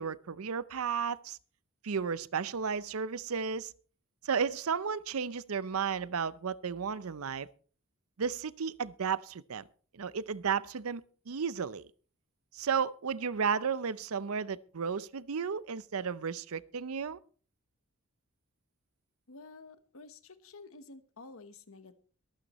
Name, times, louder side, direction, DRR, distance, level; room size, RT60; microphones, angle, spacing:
voice 1, 0.0-1.4 1.8-3.7 4.2-7.5 8.2-9.6 9.9-11.9 12.5-17.2, right 6 dB, 70° right, 0.6 m, -33 dB
voice 2, 19.3-22.0, left 3 dB, 65° left, 1.1 m, -51 dB
23.0 x 9.0 x 3.1 m
head